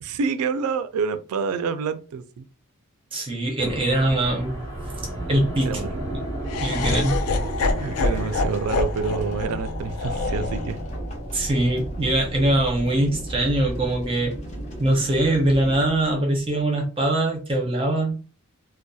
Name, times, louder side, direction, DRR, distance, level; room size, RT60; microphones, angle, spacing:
voice 1, 0.0-2.4 5.7-5.9 7.8-10.8, right 5 dB, 85° right, 0.3 m, -27 dB
voice 2, 3.1-4.7 5.3-5.7 6.1-6.2 6.6-7.2 11.3-14.3 14.8-18.1, right 1 dB, 25° right, 0.5 m, -22 dB
sound 1, 3.6-16.2, right 1 dB, 15° left, 0.9 m, -34 dB
Laughter, 6.5-12.6, left 3 dB, 85° left, 0.4 m, -28 dB
sound 2, 7.4-16.8, equal, 30° left, 0.6 m, -38 dB
2.6 x 2.1 x 2.2 m
head